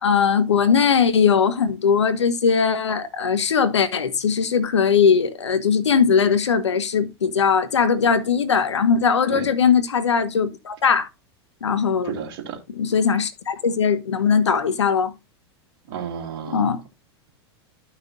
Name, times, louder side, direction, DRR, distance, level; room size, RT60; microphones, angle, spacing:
voice 1, 0.0-11.1 11.6-12.1 12.7-15.1 16.5-16.8, left 6 dB, 90° left, 1.0 m, -20 dB
voice 2, 12.0-12.6 15.9-16.8, right 7 dB, 55° right, 3.0 m, -32 dB
13.5 x 5.9 x 2.5 m
hypercardioid pair, 100°, 14 cm